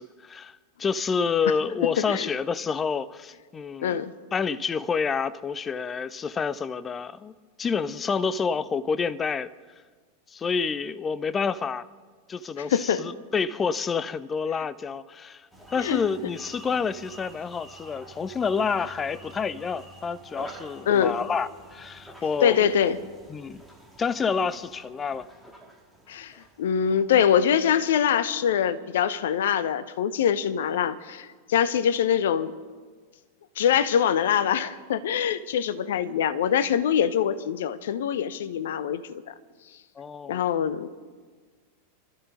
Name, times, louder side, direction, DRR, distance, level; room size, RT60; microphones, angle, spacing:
voice 1, 0.0-4.0 4.3-7.3 7.6-9.5 10.3-11.9 12.3-22.7 23.3-23.6 24.0-25.3 40.0-40.4, left 5 dB, 20° left, 0.6 m, -28 dB
voice 2, 3.8-4.1 12.7-13.0 15.8-16.0 20.9-21.2 22.4-23.0 26.1-26.3 26.6-32.5 33.6-39.3 40.3-40.9, left 8 dB, 60° left, 0.8 m, -24 dB
sound 1, 15.5-27.9, right 1 dB, ahead, 2.3 m, -48 dB
27.5 x 13.0 x 3.8 m
figure-of-eight pair, 90°, 0 cm